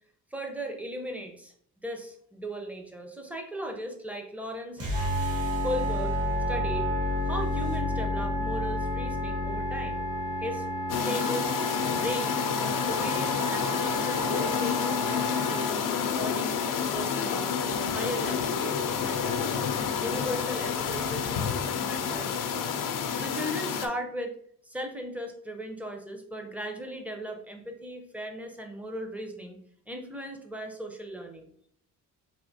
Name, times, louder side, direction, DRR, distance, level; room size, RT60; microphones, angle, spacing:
voice 1, 0.3-1.5 1.8-4.8 5.6-6.2 6.5-6.9 7.2-10.1 10.4-11.6 11.9-19.7 20.0-22.8 23.2-24.4 24.6-29.6 29.9-31.5, equal, 5° right, 2 dB, 0.7 m, -37 dB
sound 1, 4.8-11.0, left 3 dB, 40° right, 1.7 m, -31 dB
Wind instrument woodwind instrument, 4.9-15.7, right 4 dB, 80° right, 1.3 m, -34 dB
sound 2, 10.9-23.9, left 7 dB, 65° left, 0.6 m, -29 dB
4.8 x 2.8 x 2.7 m, 0.64 s
cardioid pair, 95°, 36 cm